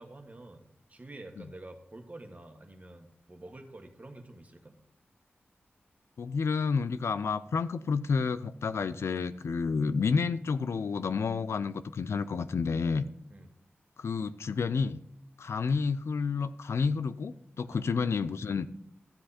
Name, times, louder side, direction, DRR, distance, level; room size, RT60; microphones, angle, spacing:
voice 1, 0.0-4.8 13.3-13.5 17.6-17.8, right 2 dB, 35° right, 5 dB, 1.6 m, -48 dB
voice 2, 6.2-13.0 14.0-15.0 15.4-18.7, left 5 dB, 85° left, 13 dB, 0.5 m, -30 dB
13.0 x 7.7 x 4.3 m, 0.73 s
wide cardioid pair, 75°, 4 cm